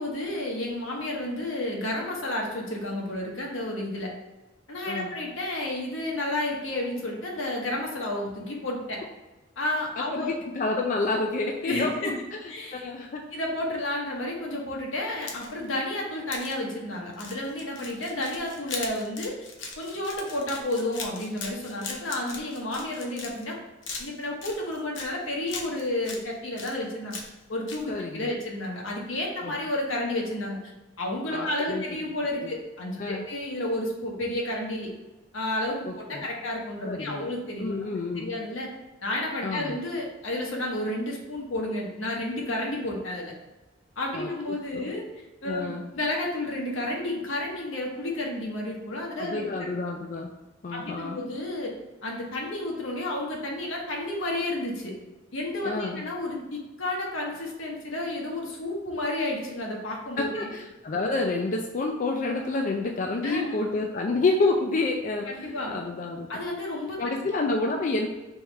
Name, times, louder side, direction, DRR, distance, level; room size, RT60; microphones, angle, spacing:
voice 1, 0.0-4.1 4.7-9.0 9.6-10.3 11.6-12.1 12.5-12.8 13.3-19.3 19.8-23.6 24.0-30.6 31.0-34.9 35.3-37.7 38.1-38.7 39.0-43.3 44.0-45.0 45.4-49.7 50.7-51.7 52.0-54.9 55.3-60.5 63.2-63.6 65.3-65.7 66.3-67.0, left 1 dB, 80° left, -1 dB, 1.1 m, -31 dB
voice 2, 10.0-13.2 27.9-28.3 29.4-29.6 31.3-31.8 32.4-32.6 33.0-33.3 35.9-36.3 36.8-37.3 37.6-38.3 39.4-39.8 44.1-44.3 44.7-44.9 45.4-45.8 49.2-50.3 50.6-51.2 55.6-56.0 60.2-66.4 67.0-68.1, left 3 dB, 40° left, 1 dB, 0.4 m, -29 dB
sound 1, 15.1-15.7 16.3-16.5 17.1-23.5 23.8-25.1 25.5-26.2 26.6-27.4 27.7-27.8, left 4 dB, 65° left, 0.7 m, -39 dB
3.5 x 3.1 x 4.5 m, 1.1 s
head